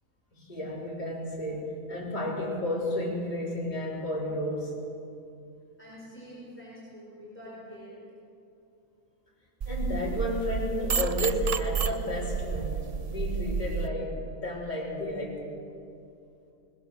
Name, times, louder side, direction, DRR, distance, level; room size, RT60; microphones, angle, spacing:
voice 1, 0.3-4.8 9.7-15.5, left 1 dB, 30° left, -5 dB, 3.8 m, -32 dB
voice 2, 5.8-8.0, equal, 10° left, -8 dB, 5.2 m, -46 dB
sound 1, 9.6-13.9, right 6 dB, 50° right, 0.4 m, -30 dB
21.5 x 20.0 x 6.8 m, 2.7 s
omnidirectional pair, 1.5 m